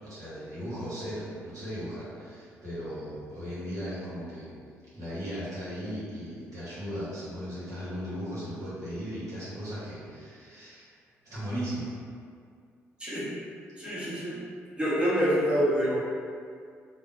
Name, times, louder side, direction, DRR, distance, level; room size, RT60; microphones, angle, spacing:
voice 1, 0.0-4.5 4.9-10.9 11.2-11.9, equal, 50° right, -11 dB, 1.2 m, -37 dB
voice 2, 13.8-14.4 14.8-16.0, equal, 15° right, -10 dB, 1.1 m, -26 dB
3.5 x 2.1 x 2.5 m, 2.2 s
hypercardioid pair, 45°, 7 cm